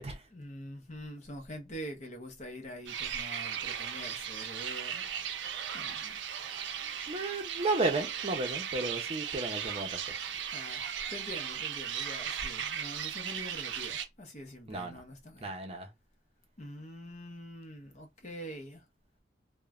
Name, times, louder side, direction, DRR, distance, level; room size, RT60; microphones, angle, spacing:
voice 1, 0.3-5.4 5.7-6.2 10.3-15.5 16.6-18.8, equal, 40° left, 0.7 m, -45 dB
sound 1, 2.9-14.1, right 8 dB, 85° right, 0.5 m, -37 dB
voice 2, 7.1-10.2 14.7-15.0 15.4-15.9, right 2 dB, 35° right, 0.6 m, -33 dB
3.0 x 2.1 x 2.3 m
head